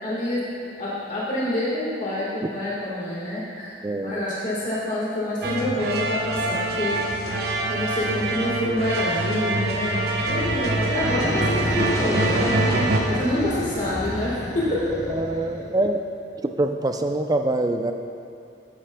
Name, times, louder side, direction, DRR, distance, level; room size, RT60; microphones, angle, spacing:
voice 1, 0.0-0.4 0.8-3.7 4.0-6.9 7.7-12.5 13.0-15.0, left 1 dB, 45° left, -7 dB, 1.5 m, -27 dB
voice 2, 3.8-4.2 15.1-16.0 16.4-17.9, right 2 dB, 20° right, 6 dB, 0.4 m, -24 dB
sound 1, 5.4-13.0, right 2 dB, 55° right, 0.7 m, -25 dB
sound 2, 10.1-16.0, left 1 dB, 15° left, 0.7 m, -31 dB
12.5 x 8.8 x 2.2 m, 2.7 s
head